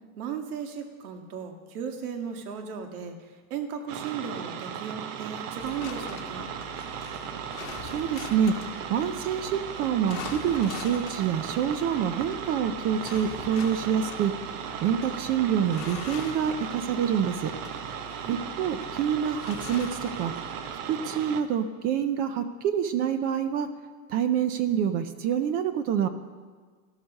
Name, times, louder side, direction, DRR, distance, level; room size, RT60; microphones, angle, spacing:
voice 1, 0.2-6.5 18.2-18.4, right 7 dB, 75° right, 5 dB, 2.1 m, -36 dB
sound 1, 3.9-21.4, right 8 dB, 60° right, 1.2 m, -37 dB
sound 2, 5.6-20.8, left 9 dB, 55° left, 2.0 m, -44 dB
voice 2, 7.8-8.6 8.9-14.3 14.8-17.5 18.3-20.3 20.9-23.7 24.1-26.1, right 8 dB, 20° right, 11 dB, 0.3 m, -27 dB
13.5 x 12.5 x 6.4 m, 1.5 s
supercardioid pair, 150°, 45 cm